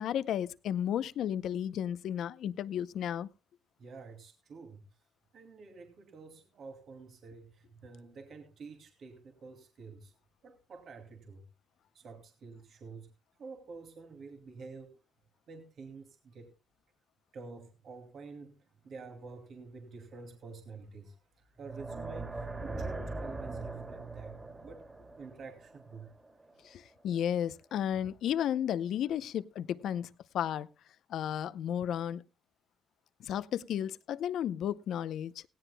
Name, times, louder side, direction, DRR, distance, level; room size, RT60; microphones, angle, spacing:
voice 1, 0.0-3.3 26.6-30.7 31.1-32.2 33.2-35.4, left 10 dB, 75° left, 0.6 m, -33 dB
voice 2, 3.8-4.8 5.3-10.1 10.4-11.4 11.9-13.1 13.4-14.9 15.5-16.5 17.3-18.6 18.8-21.1 21.6-24.3 24.6-24.9 25.2-26.1, right 4 dB, 60° right, 2.5 m, -49 dB
sound 1, 21.6-26.7, right 3 dB, 25° right, 2.8 m, -41 dB
17.0 x 17.0 x 2.2 m
cardioid pair, 90°, 0 cm